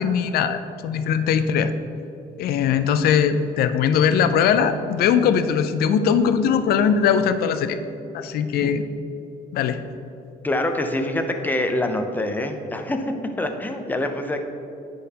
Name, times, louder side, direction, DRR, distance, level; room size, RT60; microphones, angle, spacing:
voice 1, 0.0-1.7 2.4-7.8 8.1-8.8 9.5-9.8, left 7 dB, 65° left, 10 dB, 0.4 m, -20 dB
voice 2, 10.4-14.5, left 1 dB, 10° left, 5 dB, 0.5 m, -25 dB
9.6 x 3.9 x 2.8 m, 2.8 s
cardioid pair, 110°, 17 cm